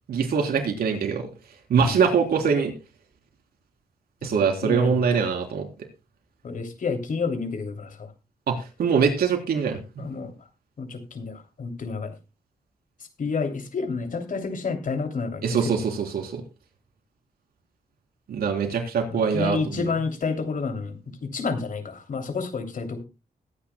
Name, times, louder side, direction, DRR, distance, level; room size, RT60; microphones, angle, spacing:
voice 1, 0.1-1.3 1.7-2.7 4.2-5.7 8.5-9.8 15.4-16.4 18.3-19.9, right 6 dB, 85° right, 4 dB, 3.5 m, -23 dB
voice 2, 4.3-5.0 6.4-8.1 10.0-10.3 10.8-12.1 13.2-15.7 19.1-23.0, left 4 dB, 60° left, 6 dB, 3.0 m, -30 dB
21.0 x 9.9 x 2.2 m, 0.27 s
cardioid pair, 75°, 15 cm